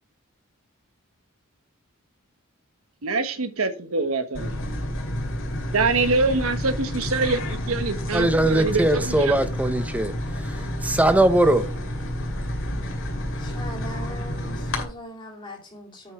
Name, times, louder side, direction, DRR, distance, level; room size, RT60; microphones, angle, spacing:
voice 1, 3.0-4.5 5.7-9.4, right 3 dB, 90° right, 1.2 m, -25 dB
sound 1, 4.3-14.8, left 1 dB, 65° left, 2.3 m, -30 dB
voice 2, 8.1-10.1 10.8-11.6, right 1 dB, 5° right, 0.7 m, -20 dB
voice 3, 13.4-16.1, left 1 dB, 25° left, 2.5 m, -40 dB
7.8 x 6.2 x 4.5 m
head